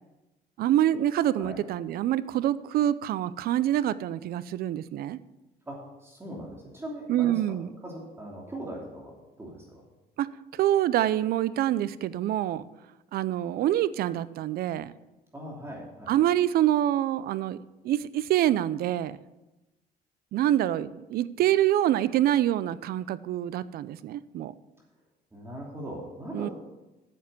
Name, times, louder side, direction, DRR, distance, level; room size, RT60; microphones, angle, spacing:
voice 1, 0.6-5.2 7.1-7.7 10.2-12.6 13.1-14.9 16.1-17.6 17.8-19.2 20.3-24.5 26.3-26.5, right 12 dB, 65° right, 17 dB, 0.5 m, -26 dB
voice 2, 5.7-7.6 7.8-9.8 15.3-16.1 25.3-26.5, right 1 dB, 15° right, -3 dB, 2.8 m, -40 dB
9.1 x 7.4 x 6.9 m, 1.0 s
cardioid pair, 110°, 17 cm